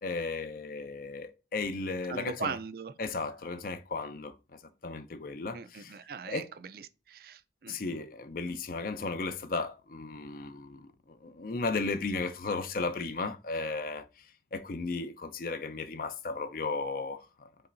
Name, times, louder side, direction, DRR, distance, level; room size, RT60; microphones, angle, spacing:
voice 1, 0.0-2.6 3.0-6.0 6.2-6.5 7.7-17.5, left 3 dB, 50° left, 0.5 m, -35 dB
voice 2, 2.1-2.9 5.5-6.4 6.7-7.7, right 6 dB, 55° right, 0.4 m, -39 dB
5.5 x 3.1 x 2.5 m
head